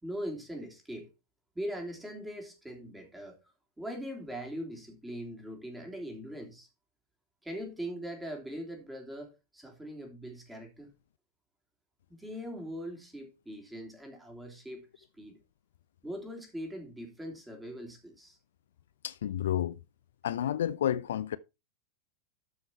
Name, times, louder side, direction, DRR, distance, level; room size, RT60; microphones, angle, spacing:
voice 1, 0.0-1.1 1.5-3.4 3.8-6.7 7.4-10.9 12.1-15.4 16.0-18.4, equal, 5° right, 3.4 m, -41 dB
voice 2, 19.0-19.8 20.2-21.4, left 10 dB, 60° left, 0.4 m, -30 dB
12.5 x 5.6 x 4.4 m
figure-of-eight pair, 90°, 0 cm